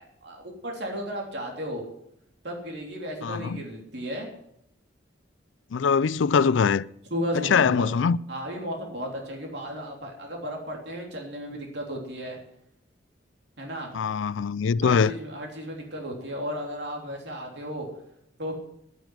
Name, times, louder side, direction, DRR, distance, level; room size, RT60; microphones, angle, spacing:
voice 1, 0.0-1.9 2.4-4.3 7.1-8.0 8.3-12.4 13.6-14.0 14.8-17.9 18.4-18.5, equal, 65° right, 3.4 m, -34 dB
voice 2, 3.2-3.6 5.7-6.8 7.5-8.2 13.9-15.1, left 6 dB, 85° left, 0.4 m, -22 dB
11.5 x 9.1 x 9.2 m
head